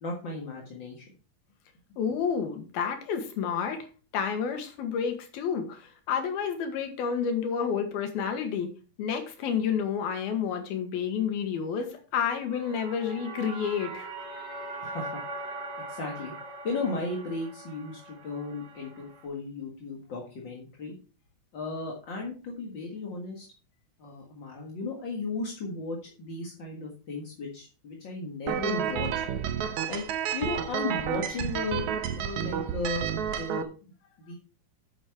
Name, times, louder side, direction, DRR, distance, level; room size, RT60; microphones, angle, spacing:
voice 1, 0.0-1.1 14.8-15.1 15.9-16.3 16.6-20.9 21.5-23.4 24.0-29.1 29.9-30.1 30.3-31.8 32.2-33.7 34.2-34.4, left 3 dB, 45° left, -1 dB, 1.7 m, -35 dB
voice 2, 2.0-3.9 4.1-8.7 9.0-14.1, left 7 dB, 85° left, 6 dB, 3.4 m, -30 dB
sound 1, 12.4-19.3, right 2 dB, 35° right, 2.5 m, -41 dB
sound 2, 28.5-33.6, right 8 dB, 70° right, 1.8 m, -30 dB
9.5 x 7.2 x 4.6 m, 0.35 s
omnidirectional pair, 4.3 m